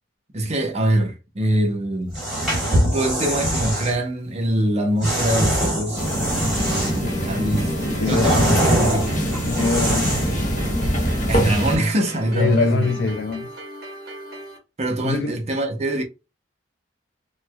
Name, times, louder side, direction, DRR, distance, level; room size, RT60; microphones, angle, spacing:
voice 1, 0.3-2.1 2.9-6.1 6.5-7.7 8.1-9.1 11.3-13.1 14.8-16.0, right 1 dB, 40° right, 0.7 m, -23 dB
sound 1, 2.1-3.9 5.0-7.1 7.5-10.4, right 1 dB, 5° right, 1.4 m, -23 dB
sound 2, 6.0-11.8, equal, 45° left, 1.0 m, -24 dB
sound 3, 6.6-14.6, right 1 dB, 55° right, 1.1 m, -38 dB
voice 2, 7.9-8.6 9.5-10.1 12.3-13.5 15.0-15.4, left 5 dB, 75° left, 0.4 m, -23 dB
3.1 x 2.1 x 2.3 m
head